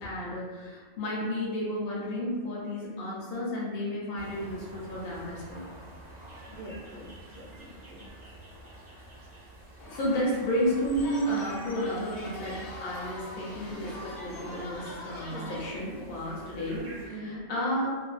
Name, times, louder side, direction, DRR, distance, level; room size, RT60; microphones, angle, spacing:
voice 1, 0.0-5.7 6.5-6.8 9.9-18.0, equal, 55° left, -5 dB, 0.8 m, -32 dB
sound 1, 4.1-17.1, equal, 15° right, 0.5 m, -49 dB
voice 2, 6.5-8.0 15.3-15.6 17.1-17.4, right 1 dB, 60° right, -4 dB, 0.6 m, -43 dB
sound 2, 9.8-15.7, left 1 dB, 85° left, 1.0 m, -43 dB
2.6 x 2.2 x 2.4 m, 1.4 s
omnidirectional pair, 1.3 m